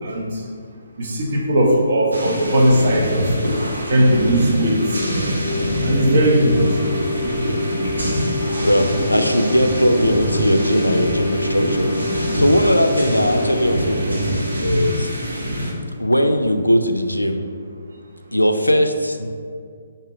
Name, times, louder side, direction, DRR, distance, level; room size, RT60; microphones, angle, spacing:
voice 1, 0.0-0.4 1.0-3.5 3.9-5.0 5.8-6.8, equal, 45° right, -1 dB, 0.8 m, -18 dB
sound 1, 2.1-15.7, equal, 75° right, 1.0 m, -25 dB
sound 2, 4.1-15.6, left 1 dB, 40° left, 0.8 m, -27 dB
voice 2, 8.5-11.9 12.3-15.1 16.0-17.4 18.3-19.3, equal, 85° left, 6 dB, 0.3 m, -19 dB
3.6 x 2.7 x 4.7 m, 2.2 s
figure-of-eight pair, 135°, 0 cm